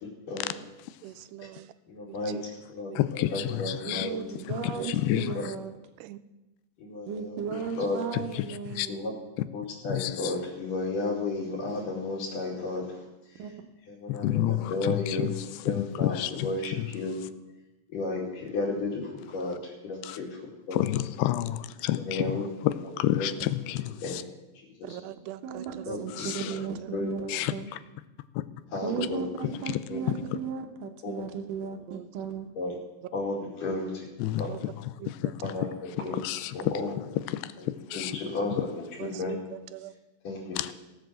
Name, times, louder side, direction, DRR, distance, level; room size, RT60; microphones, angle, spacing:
voice 1, 0.0-0.5 1.9-4.7 5.4-5.5 6.8-8.0 8.9-9.1 9.5-13.0 13.3-13.4 13.9-17.2 17.9-20.8 21.9-22.5 23.0-23.3 24.0-24.2 24.8-25.0 25.9-26.6 26.9-27.1 28.7-29.6 29.9-30.0 31.0-31.1 31.6-31.7 32.6-32.7 33.1-34.1 34.4-34.5 35.4-35.7 36.0-36.2 36.5-37.0 37.6-37.7 38.0-39.4 40.2-40.6, left 2 dB, 55° left, -6 dB, 3.8 m, -33 dB
voice 2, 1.0-1.7 2.1-2.4 2.9-3.0 3.3-3.4 6.0-6.2 24.8-26.2 26.8-27.5 31.9-32.1 34.5-34.6 35.0-35.1 36.0-36.2 39.0-39.9, right 14 dB, 85° right, 13 dB, 2.7 m, -42 dB
voice 3, 3.0-4.1 4.5-5.3 8.1-8.4 8.7-8.9 9.9-10.3 14.1-15.4 15.7-16.9 20.0-20.2 20.7-22.2 22.6-24.2 26.2-26.5 27.3-27.5 29.7-29.8 34.2-34.5 35.1-35.3 36.1-36.6 37.3-37.5 37.9-38.2 40.6-40.7, left 14 dB, 80° left, 14 dB, 2.6 m, -29 dB
voice 4, 3.8-5.7 7.1-9.1 13.4-13.5 23.4-23.5 25.4-27.7 28.8-32.5, right 6 dB, 65° right, 5 dB, 2.3 m, -36 dB
17.0 x 7.9 x 7.5 m, 1.0 s
omnidirectional pair, 4.9 m